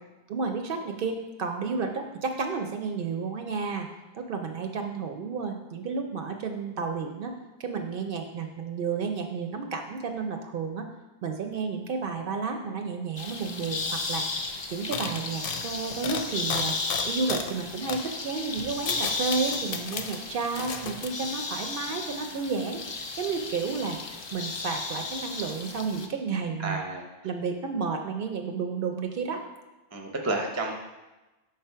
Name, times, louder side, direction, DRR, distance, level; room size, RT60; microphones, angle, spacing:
voice 1, 0.3-3.9 4.1-7.3 7.6-10.9 11.2-14.3 14.7-16.7 17.1-24.0 24.3-26.8 27.2-29.4, right 5 dB, 65° right, 4 dB, 0.7 m, -31 dB
sound 1, 13.2-26.1, left 3 dB, 45° left, 0.3 m, -34 dB
sound 2, 13.8-13.9 14.1-14.4 14.9-17.6 17.9-18.1 18.6-20.2 20.5-21.1, left 6 dB, 65° left, 0.7 m, -35 dB
voice 2, 26.6-27.0 29.9-30.7, right 2 dB, 20° right, 2 dB, 0.5 m, -30 dB
5.2 x 3.4 x 5.5 m, 1.1 s
omnidirectional pair, 1.0 m